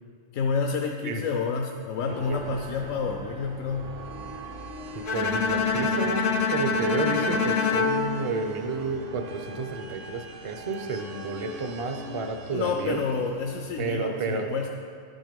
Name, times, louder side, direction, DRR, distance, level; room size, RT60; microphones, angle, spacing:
voice 1, 0.3-4.0 12.5-14.7, left 5 dB, 80° left, 3 dB, 1.0 m, -29 dB
voice 2, 2.1-2.4 5.1-13.0 13.8-14.5, right 3 dB, 35° right, 5 dB, 0.5 m, -31 dB
sound 1, 2.1-13.7, right 3 dB, 65° right, 1.1 m, -41 dB
Bowed string instrument, 5.1-9.2, left 5 dB, 55° left, 0.7 m, -26 dB
11.0 x 6.2 x 5.2 m, 2.3 s
omnidirectional pair, 1.4 m